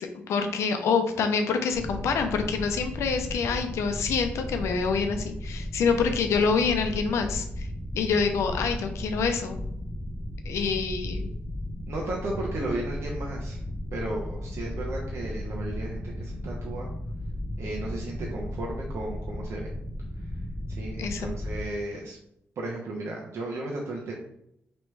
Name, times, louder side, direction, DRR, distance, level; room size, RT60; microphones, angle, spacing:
voice 1, 0.0-7.7 7.9-9.6 10.4-11.3 21.0-21.3, left 5 dB, 85° left, 6 dB, 0.6 m, -26 dB
sound 1, 1.7-21.7, left 1 dB, 10° left, 0.8 m, -35 dB
voice 2, 11.9-13.6 13.9-16.9 17.6-19.7 20.7-22.2 22.6-24.3, right 2 dB, 70° right, -3 dB, 0.8 m, -34 dB
3.1 x 3.1 x 4.6 m, 0.78 s
cardioid pair, 70°, 5 cm